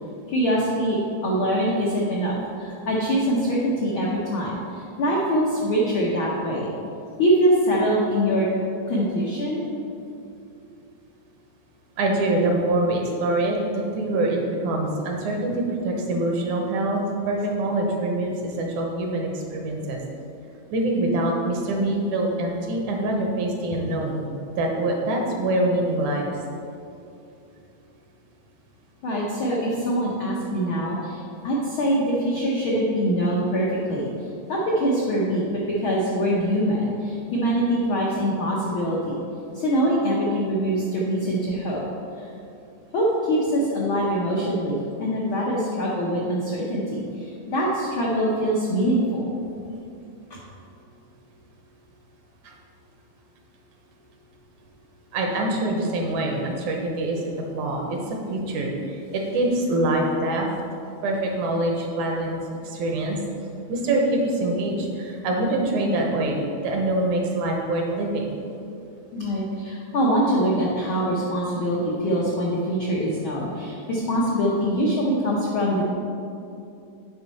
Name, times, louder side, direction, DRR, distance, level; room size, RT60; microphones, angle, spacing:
voice 1, 0.3-6.7 7.2-8.5 8.9-9.6 29.0-34.1 34.5-39.2 39.5-41.8 42.2-42.3 42.9-49.3 50.3-50.4 69.1-75.8, equal, 80° left, -4 dB, 1.1 m, -24 dB
voice 2, 12.0-20.0 20.7-24.2 24.6-26.3 52.4-52.5 55.1-60.5 61.0-63.2 63.7-68.4, right 1 dB, 75° right, 1 dB, 2.2 m, -25 dB
8.5 x 5.4 x 4.1 m, 2.6 s
omnidirectional pair, 3.6 m